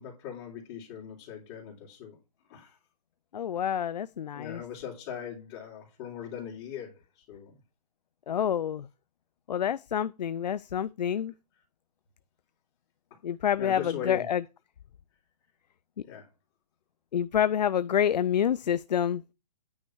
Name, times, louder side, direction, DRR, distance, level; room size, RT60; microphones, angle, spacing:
voice 1, 0.0-2.2 2.5-2.8 4.3-7.6 13.6-14.3 16.1-16.3, left 9 dB, 30° left, 3.4 m, -40 dB
voice 2, 3.3-4.6 8.3-8.9 9.5-11.3 13.2-14.4 17.1-19.2, left 9 dB, 85° left, 0.5 m, -27 dB
9.6 x 5.5 x 6.1 m
hypercardioid pair, 155°, 21 cm